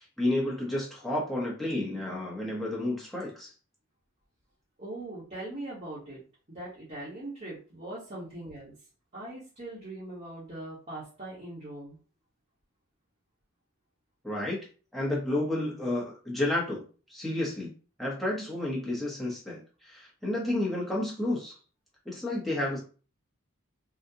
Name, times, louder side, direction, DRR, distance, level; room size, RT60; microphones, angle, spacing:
voice 1, 0.2-3.5 14.2-14.6 14.9-16.8 17.1-17.7 18.0-21.5 22.1-22.8, left 1 dB, ahead, -5 dB, 0.9 m, -31 dB
voice 2, 4.8-6.2 6.5-8.7 9.1-12.0, right 1 dB, 35° right, -9 dB, 1.2 m, -41 dB
3.7 x 2.4 x 2.8 m, 0.37 s
head